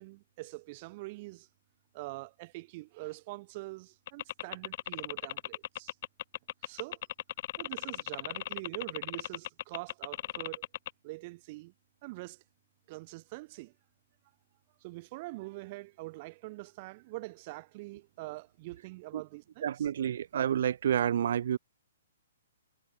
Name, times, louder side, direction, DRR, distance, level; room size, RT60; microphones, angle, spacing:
voice 1, 0.0-1.5 1.9-5.9 6.6-7.0 7.6-10.6 11.0-11.7 12.0-12.4 12.9-13.7 14.8-19.9, right 22 dB, 40° right, 5.4 m, -44 dB
sound 1, 4.1-10.9, left 14 dB, 50° left, 4.6 m, -37 dB
voice 2, 19.6-21.6, right 9 dB, 60° right, 1.0 m, -29 dB
hypercardioid pair, 140°, 0 cm